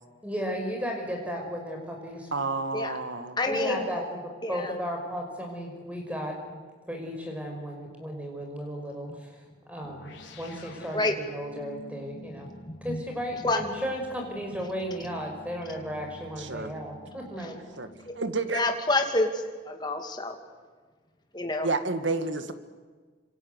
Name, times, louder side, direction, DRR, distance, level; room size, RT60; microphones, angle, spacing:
voice 1, 0.2-2.3 3.4-6.6 6.9-9.3 9.7-12.5 12.8-17.6, equal, 5° right, 2 dB, 5.7 m, -35 dB
voice 2, 2.3-3.4 16.4-16.7 17.8-17.9 18.2-18.6 21.6-22.5, right 3 dB, 75° right, 9 dB, 2.0 m, -30 dB
voice 3, 3.4-3.9 4.4-4.7 10.9-11.1 12.8-13.0 13.4-13.6 17.4-17.5 18.5-20.4 21.3-21.7, left 2 dB, 20° left, 4 dB, 2.6 m, -28 dB
sound 1, 9.8-18.6, equal, 80° left, 3.9 m, -49 dB
26.5 x 26.0 x 8.2 m, 1.5 s
head